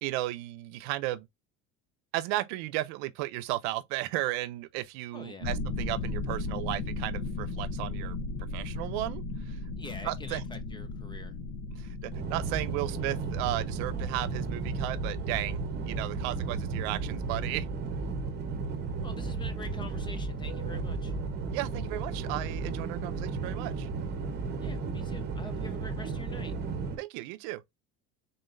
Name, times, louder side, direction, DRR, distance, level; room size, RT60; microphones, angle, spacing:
voice 1, 0.0-1.3 2.1-9.6 10.0-10.4 11.7-17.7 21.5-23.9 27.0-27.6, right 17 dB, 75° right, 0.6 m, -35 dB
voice 2, 5.1-5.5 9.8-11.3 19.0-21.1 24.6-26.5, left 2 dB, 15° left, 0.4 m, -45 dB
sound 1, 5.4-18.5, left 3 dB, 65° left, 0.8 m, -37 dB
sound 2, 12.1-27.0, right 4 dB, 30° right, 0.9 m, -34 dB
3.8 x 3.7 x 2.5 m
cardioid pair, 150°, 33 cm